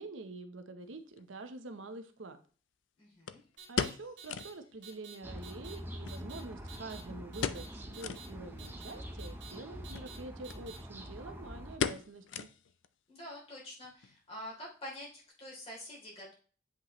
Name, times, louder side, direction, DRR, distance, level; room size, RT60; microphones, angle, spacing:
voice 1, 0.0-2.4 3.7-12.5, right 2 dB, 85° right, 8 dB, 0.8 m, -46 dB
sound 1, 1.2-1.3 3.3-4.6 4.9-5.0 5.3-5.4 6.0-6.9 7.4-7.7 8.0-8.3 8.8-8.9 9.8-10.1 10.5-10.6 10.9-11.3 11.8-12.9 13.2-13.3 13.8-14.2 14.5-14.6, left 6 dB, 75° left, 0.4 m, -37 dB
voice 2, 3.0-3.4 13.1-16.3, left 1 dB, 30° left, -4 dB, 3.1 m, -46 dB
sound 2, 3.6-3.9 4.2-4.5 4.8-5.1 5.4-5.7 6.1-6.4 6.7-7.0 7.3-7.7 7.9-8.3 8.6-8.9 9.2-9.5 9.8-10.2 10.4-10.8, right 7 dB, 60° right, 2.1 m, -50 dB
sound 3, 5.2-11.8, equal, 10° right, 0.6 m, -45 dB
8.1 x 5.3 x 3.1 m, 0.39 s
head